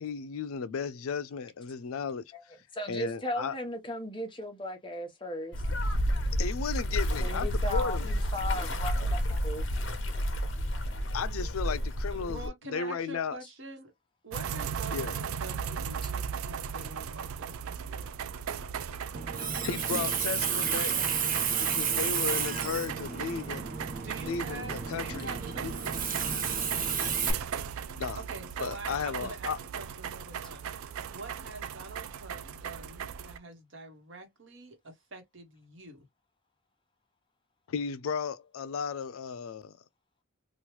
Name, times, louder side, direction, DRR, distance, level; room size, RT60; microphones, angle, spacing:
voice 1, 0.0-2.2 2.9-3.6 6.4-8.1 11.1-12.4 12.7-13.4 14.9-15.2 19.6-21.2 21.6-23.7 24.2-25.3 25.6-25.7 28.0-28.2 28.6-29.6 37.7-39.7, left 6 dB, 80° left, 0.4 m, -34 dB
voice 2, 2.7-5.6 7.2-9.7 16.0-16.1 29.2-29.3, left 1 dB, 25° left, 0.8 m, -36 dB
sound 1, 5.5-12.5, equal, 60° left, 0.8 m, -30 dB
voice 3, 12.1-13.9 14.2-18.2 24.0-25.9 28.2-36.1, right 2 dB, 60° right, 1.1 m, -45 dB
sound 2, 14.3-33.4, right 7 dB, 85° right, 0.4 m, -38 dB
Water tap faucet, 19.1-27.3, right 6 dB, 40° right, 0.7 m, -31 dB
3.0 x 2.3 x 3.0 m
head